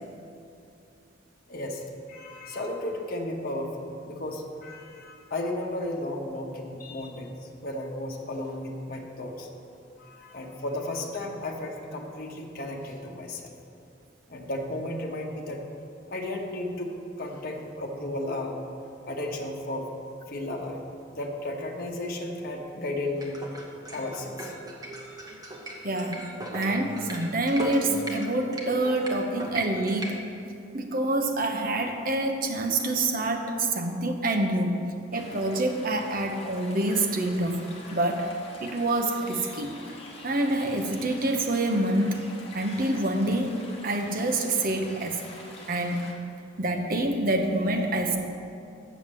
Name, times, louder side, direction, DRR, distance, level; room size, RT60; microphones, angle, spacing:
voice 1, 1.5-9.5 10.0-13.5 14.3-15.6 16.1-16.9 17.2-18.6 19.1-19.9 20.3-20.8 21.1-23.4 23.9-24.5, left 1 dB, 50° left, 0 dB, 1.1 m, -34 dB
sound 1, 23.1-30.1, equal, 20° right, 1.1 m, -38 dB
voice 2, 25.8-26.3 26.5-30.2 30.7-34.9 35.1-37.6 37.9-38.3 38.6-39.7 40.2-42.2 42.5-43.6 43.8-45.2 45.7-46.1 46.6-48.2, right 2 dB, 50° right, 4 dB, 0.9 m, -26 dB
sound 2, 35.1-46.1, left 2 dB, 30° left, 1.3 m, -46 dB
7.2 x 7.2 x 7.4 m, 2.6 s
head